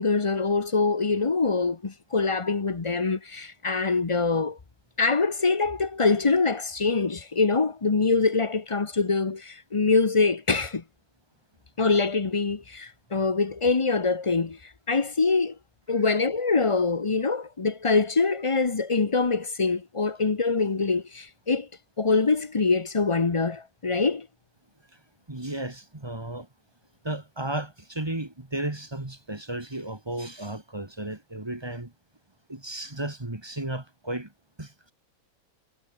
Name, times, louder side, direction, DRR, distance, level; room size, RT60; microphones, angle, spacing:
voice 1, 0.0-4.6 5.0-10.8 11.8-14.6 14.9-15.6 15.9-21.7 22.0-24.3, left 4 dB, 30° left, 0.6 m, -24 dB
voice 2, 25.3-26.5 27.0-31.9 32.5-34.3 34.6-34.9, right 1 dB, 15° right, 1.7 m, -34 dB
omnidirectional pair, 2.0 m